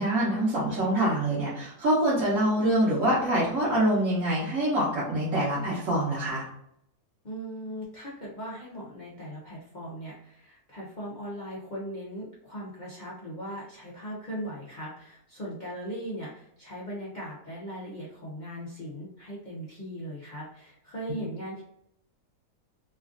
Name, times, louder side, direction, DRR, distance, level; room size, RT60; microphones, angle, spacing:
voice 1, 0.0-6.4, right 1 dB, 60° right, -8 dB, 1.2 m, -25 dB
voice 2, 7.2-21.6, equal, 55° left, -6 dB, 0.5 m, -39 dB
3.2 x 2.4 x 2.4 m, 0.76 s
omnidirectional pair, 1.6 m